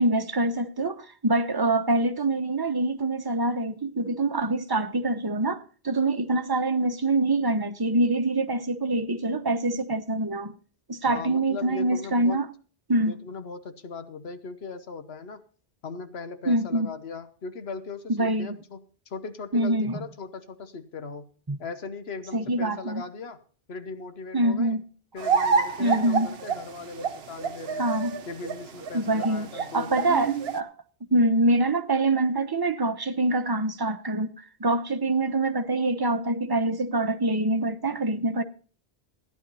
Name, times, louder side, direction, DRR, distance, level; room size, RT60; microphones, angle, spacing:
voice 1, 0.0-10.6 10.9-12.5 12.9-13.2 16.5-16.9 18.1-18.6 19.5-20.0 21.5-21.6 22.3-23.0 24.3-24.8 25.8-26.3 27.8-28.2 28.9-29.5 29.7-30.7 31.1-38.4, right 2 dB, 25° right, 0.9 m, -25 dB
voice 2, 11.1-12.4 13.0-15.4 15.8-18.8 19.1-21.3 21.6-23.4 23.7-24.8 25.1-27.9 28.3-30.3, left 4 dB, 80° left, 1.3 m, -38 dB
sound 1, 25.2-30.6, right 6 dB, 80° right, 1.1 m, -28 dB
15.0 x 10.5 x 4.1 m
omnidirectional pair, 1.0 m